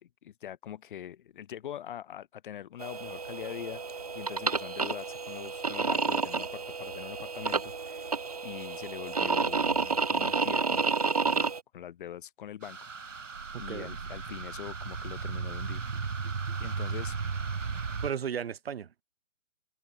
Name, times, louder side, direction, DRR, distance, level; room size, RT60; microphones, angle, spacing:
voice 1, 0.0-3.8 4.1-8.1 8.4-10.8 11.2-12.8 13.1-13.2 13.6-15.9 16.6-17.1, left 10 dB, 40° left, 4.8 m, -43 dB
sound 1, 2.8-11.6, right 5 dB, 30° right, 0.4 m, -30 dB
sound 2, 12.6-18.1, right 5 dB, 75° right, 3.3 m, -35 dB
voice 2, 13.5-13.9 16.2-16.6 18.0-19.0, right 8 dB, 50° right, 4.2 m, -36 dB
figure-of-eight pair, 145°, 38 cm